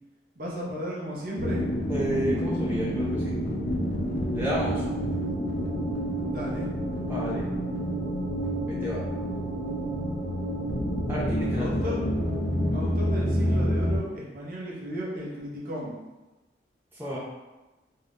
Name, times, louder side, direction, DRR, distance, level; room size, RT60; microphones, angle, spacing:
voice 1, 0.4-1.7 6.3-6.7 11.6-12.0 12.7-16.0, equal, 50° right, -4 dB, 0.6 m, -35 dB
sound 1, 1.4-14.0, equal, 70° left, 0.6 m, -28 dB
voice 2, 1.9-3.4 4.3-4.8 7.1-7.5 8.7-9.0 11.1-12.0 16.9-17.2, equal, 10° right, -7 dB, 0.5 m, -31 dB
2.6 x 2.3 x 3.4 m, 1.1 s
head